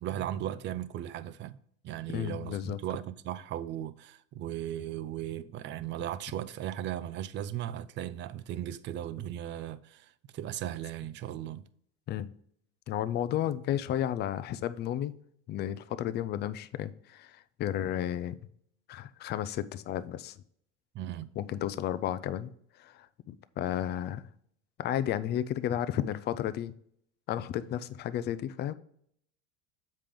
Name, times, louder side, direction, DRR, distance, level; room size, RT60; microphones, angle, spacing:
voice 1, 0.0-1.6 1.8-11.6 20.9-21.3, right 11 dB, 35° right, 0.4 m, -37 dB
voice 2, 2.1-2.8 12.1-12.3 12.9-15.1 15.5-18.3 18.9-20.4 21.4-22.5 22.8-24.3 24.8-26.7 27.3-28.7, left 11 dB, 30° left, 0.4 m, -33 dB
7.4 x 5.1 x 3.6 m
supercardioid pair, 120°, 32 cm